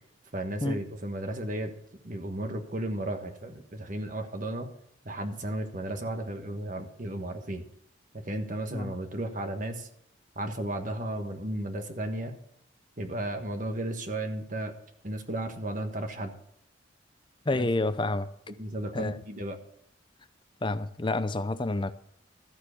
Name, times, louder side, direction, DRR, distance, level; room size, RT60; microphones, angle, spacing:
voice 1, 0.3-1.7 2.0-4.7 5.0-7.6 8.3-9.9 10.3-12.3 13.0-14.7 15.0-16.3 17.5-17.7 18.6-19.6, right 1 dB, 40° right, 1.3 m, -34 dB
voice 2, 17.5-18.3 18.9-19.2 20.6-21.9, left 2 dB, 25° left, 0.6 m, -29 dB
13.5 x 7.5 x 7.0 m
head